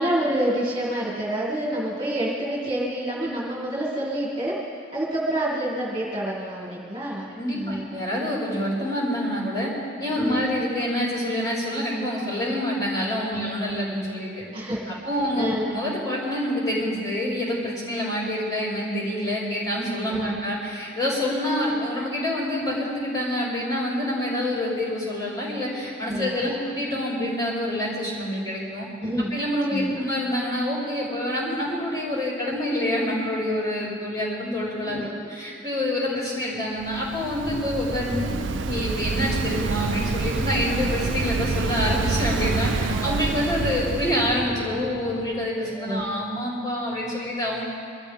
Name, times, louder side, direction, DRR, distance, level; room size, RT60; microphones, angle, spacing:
voice 1, 0.0-4.6 4.9-7.8 10.1-10.5 13.3-13.7 14.5-14.9 15.4-15.6 20.1-20.3 26.1-26.5 29.0-29.3 29.7-30.0 34.8-35.1 42.9-43.1 45.6-46.0, right 1 dB, 25° right, -6 dB, 2.3 m, -28 dB
voice 2, 7.3-9.7 10.0-14.4 14.9-28.9 29.3-38.3 38.6-47.6, left 1 dB, 20° left, -8 dB, 4.9 m, -27 dB
Waves surf, 36.8-44.4, right 4 dB, 70° right, 0.5 m, -27 dB
sound 1, 37.4-45.3, equal, ahead, 3.9 m, -37 dB
24.0 x 13.5 x 3.6 m, 2.3 s
head